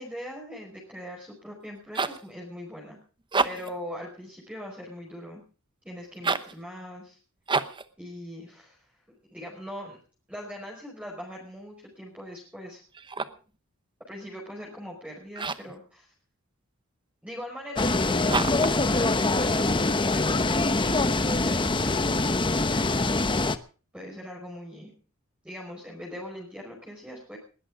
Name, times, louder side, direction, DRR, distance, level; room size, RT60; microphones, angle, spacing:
voice 1, 0.0-3.0 3.4-5.4 5.8-7.2 8.0-8.9 9.3-10.0 10.3-12.8 14.1-16.1 17.2-22.2 23.9-24.9 25.4-27.4, equal, 5° right, -3 dB, 5.1 m, -41 dB
sound 1, 1.6-2.3 3.2-3.8 6.1-6.6 7.5-7.9 12.9-13.5 15.3-15.8 18.3-18.8, right 4 dB, 25° right, 0.9 m, -29 dB
sound 2, 17.8-23.6, left 2 dB, 25° left, 0.9 m, -24 dB
20.5 x 17.0 x 3.7 m, 0.38 s
head